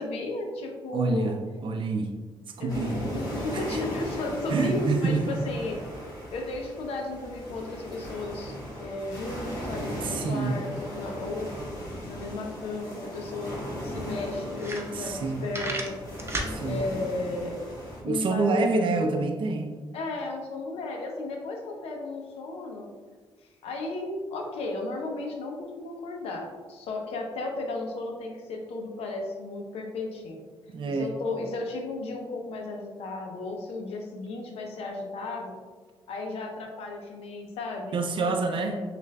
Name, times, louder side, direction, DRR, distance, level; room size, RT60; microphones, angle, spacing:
voice 1, 0.0-1.3 2.6-5.8 6.3-11.5 11.9-13.6 13.8-16.0 16.6-17.6 18.0-19.2 19.9-22.9 23.6-30.4 30.9-35.5 36.1-38.8, left 2 dB, 90° left, 2 dB, 0.6 m, -34 dB
voice 2, 0.9-2.1 2.6-3.1 3.5-3.8 4.5-5.4 10.0-10.7 14.9-15.4 16.5-16.8 18.0-19.7 30.7-31.1 37.9-38.8, right 3 dB, 55° right, 5 dB, 0.4 m, -27 dB
sound 1, 2.7-18.0, equal, 35° left, 1.4 m, -37 dB
sound 2, 13.6-13.7 14.2-14.3 14.5-15.2 15.5-16.5, right 2 dB, 25° right, 0.7 m, -32 dB
6.2 x 2.5 x 2.2 m, 1.4 s
cardioid pair, 65°, 10 cm